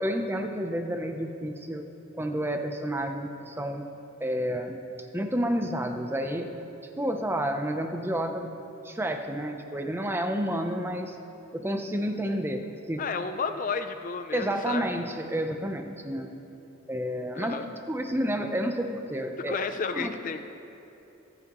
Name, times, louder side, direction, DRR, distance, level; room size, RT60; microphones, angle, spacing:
voice 1, 0.0-1.8 2.1-3.8 4.2-4.8 5.1-6.5 7.0-8.5 8.8-11.2 11.5-12.6 12.9-13.0 14.3-16.3 16.9-17.6 17.9-19.6 19.9-20.1, equal, 10° right, 5 dB, 0.6 m, -30 dB
voice 2, 13.0-14.8 17.3-17.7 19.5-20.5, left 5 dB, 40° left, 9 dB, 0.4 m, -32 dB
25.0 x 9.7 x 3.1 m, 2.9 s
head